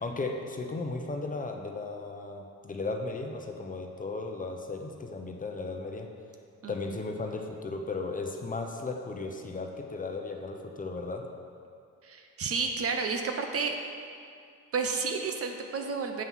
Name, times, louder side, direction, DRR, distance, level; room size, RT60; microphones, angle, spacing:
voice 1, 0.0-6.1 6.7-11.3, left 3 dB, 25° left, 3 dB, 0.8 m, -35 dB
voice 2, 12.0-13.8 14.7-16.2, right 5 dB, 50° right, 4 dB, 0.9 m, -31 dB
7.6 x 5.5 x 6.2 m, 2.4 s
cardioid pair, 90°, 30 cm